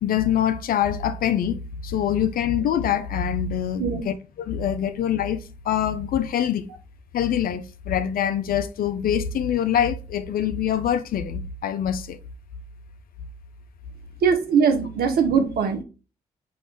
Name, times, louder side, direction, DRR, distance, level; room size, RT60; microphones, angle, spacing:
voice 1, 0.0-6.7 7.1-12.2, left 9 dB, 60° left, 0.5 m, -24 dB
voice 2, 14.2-15.8, right 6 dB, 65° right, 0.8 m, -21 dB
4.8 x 2.5 x 3.7 m
hypercardioid pair, 45°, 17 cm